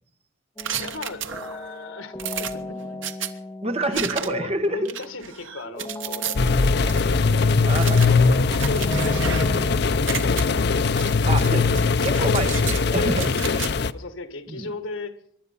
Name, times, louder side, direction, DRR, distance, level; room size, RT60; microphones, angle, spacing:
sound 1, 0.6-5.2 5.7-9.8, left 2 dB, 15° left, 1.8 m, -38 dB
sound 2, 0.6-1.7 2.2-3.3 3.9-4.5 4.9-6.4 6.9-7.0 7.7-9.7 9.9-10.4 11.0-11.5 11.8-12.8 13.2-13.7, right 8 dB, 70° right, 1.2 m, -32 dB
voice 1, 0.8-2.8 3.3-3.4 3.8-6.6 7.0-10.7 11.5-11.7 13.3-13.6 13.9-15.2, left 3 dB, 80° left, 10 dB, 1.7 m, -37 dB
voice 2, 3.6-4.8 7.7-8.1 11.2-11.6 12.0-13.3 14.5-14.7, right 2 dB, 30° right, 8 dB, 1.2 m, -27 dB
sound 3, 6.3-13.9, left 4 dB, 55° left, 0.6 m, -20 dB
23.5 x 11.0 x 5.6 m, 0.68 s
head